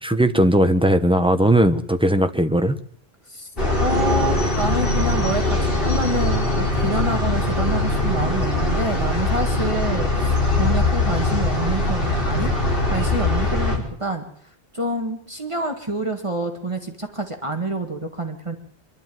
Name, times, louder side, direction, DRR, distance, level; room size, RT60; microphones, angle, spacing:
voice 1, 0.0-2.8, equal, 5° right, 8 dB, 1.0 m, -18 dB
sound 1, 3.6-13.8, left 2 dB, 55° left, 5.3 m, -21 dB
voice 2, 3.8-12.5 12.9-14.2 14.7-18.6, right 1 dB, 30° right, 4 dB, 1.8 m, -27 dB
24.5 x 12.0 x 9.3 m, 0.63 s
omnidirectional pair, 1.1 m